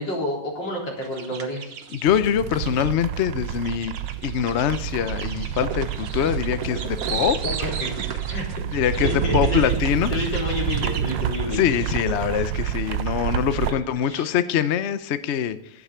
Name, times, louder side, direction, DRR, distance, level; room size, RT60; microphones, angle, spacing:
voice 1, 0.0-1.7 7.4-7.9 8.3-9.7 10.1-11.7 14.0-14.3, left 1 dB, 60° left, -2 dB, 4.4 m, -29 dB
sound 1, 1.0-2.9 3.5-12.0, right 6 dB, 55° right, 1.4 m, -35 dB
voice 2, 1.9-3.9 4.2-7.4 8.7-10.1 11.4-15.8, left 9 dB, 85° left, 12 dB, 0.6 m, -24 dB
sound 2, 2.0-13.7, right 10 dB, 70° right, 1.3 m, -28 dB
11.5 x 9.4 x 6.7 m, 0.71 s
omnidirectional pair, 2.2 m